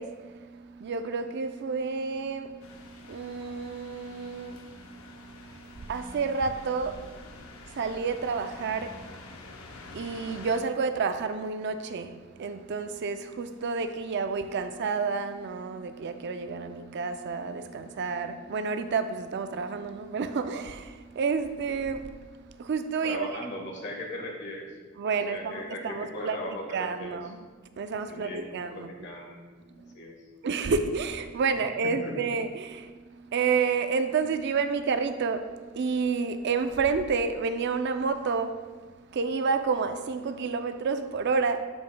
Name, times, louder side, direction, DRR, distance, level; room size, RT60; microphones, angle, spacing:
voice 1, 0.0-7.1 7.7-9.0 9.9-12.1 12.4-22.1 22.4-23.3 25.0-27.5 27.8-28.9 29.8-29.9 30.4-38.6 39.1-41.6, right 5 dB, 55° right, 9 dB, 0.4 m, -30 dB
sound 1, 2.6-10.6, left 3 dB, 80° left, 0.7 m, -47 dB
voice 2, 23.0-24.7 25.3-27.2 28.1-29.4 29.9-30.1 31.8-32.2, left 1 dB, 55° left, 0 dB, 1.3 m, -38 dB
12.5 x 5.1 x 2.2 m, 1.4 s
head